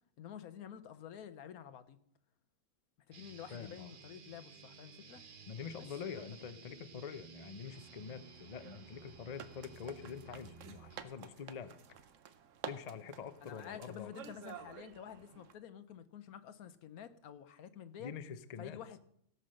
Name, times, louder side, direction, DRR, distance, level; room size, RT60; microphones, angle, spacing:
voice 1, 0.2-2.0 3.1-5.2 6.4-6.5 13.4-18.1 18.6-19.0, left 9 dB, 80° left, 12 dB, 1.3 m, -50 dB
sound 1, 3.1-11.1, right 6 dB, 45° right, 0.9 m, -55 dB
voice 2, 3.5-3.9 5.5-11.8 12.7-14.1 18.0-18.8, left 7 dB, 45° left, 12 dB, 0.5 m, -46 dB
sound 2, 7.7-15.5, right 8 dB, 65° right, 1.1 m, -52 dB
17.0 x 5.7 x 6.4 m, 0.69 s
omnidirectional pair, 1.5 m